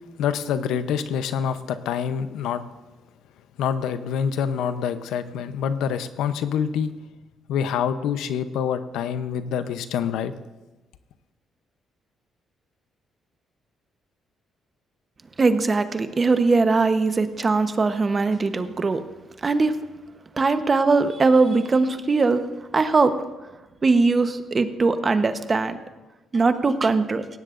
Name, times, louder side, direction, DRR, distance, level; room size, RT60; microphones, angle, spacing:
voice 1, 0.2-2.6 3.6-6.9 7.5-10.3, left 8 dB, 90° left, 11 dB, 0.7 m, -26 dB
voice 2, 15.4-19.0 19.4-19.7 20.3-22.4 22.7-23.1 23.8-25.8 26.3-27.3, right 3 dB, 35° right, 9 dB, 1.0 m, -20 dB
18.0 x 16.0 x 2.5 m, 1.1 s
cardioid pair, 90°, 0 cm